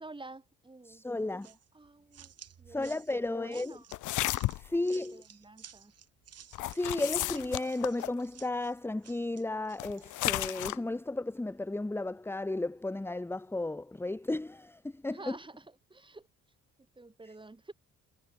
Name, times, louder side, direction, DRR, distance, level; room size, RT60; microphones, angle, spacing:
voice 1, 0.0-1.0 1.4-2.3 2.6-4.0 4.7-5.9 15.1-15.6 15.9-16.3 17.0-17.7, right 2 dB, 15° right, 2.7 m, -50 dB
voice 2, 0.9-1.5 2.7-3.8 4.6-5.2 6.6-15.4, left 2 dB, 10° left, 0.9 m, -34 dB
sound 1, 1.4-10.6, right 9 dB, 55° right, 2.6 m, -54 dB
sound 2, 3.9-4.7 6.5-8.2 9.8-10.8, left 17 dB, 80° left, 0.6 m, -33 dB
cardioid pair, 90°, 30 cm